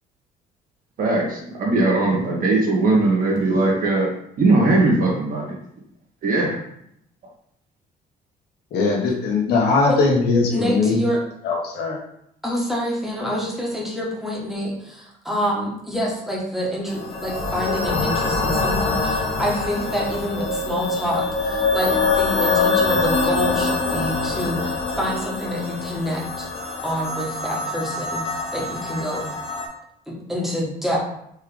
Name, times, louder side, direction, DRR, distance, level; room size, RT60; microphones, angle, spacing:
voice 1, 1.0-4.1 4.4-5.6 6.2-6.6, right 2 dB, 55° right, -3 dB, 1.7 m, -19 dB
voice 2, 8.7-11.0 11.4-12.0, left 3 dB, 70° left, -1 dB, 1.3 m, -20 dB
voice 3, 10.5-11.2 12.4-26.5 26.8-28.2 28.5-29.2 30.1-31.0, equal, ahead, -5 dB, 1.5 m, -27 dB
sound 1, 16.9-29.7, left 3 dB, 35° left, 1.0 m, -24 dB
4.4 x 3.4 x 3.5 m, 0.74 s
cardioid pair, 110°, 17 cm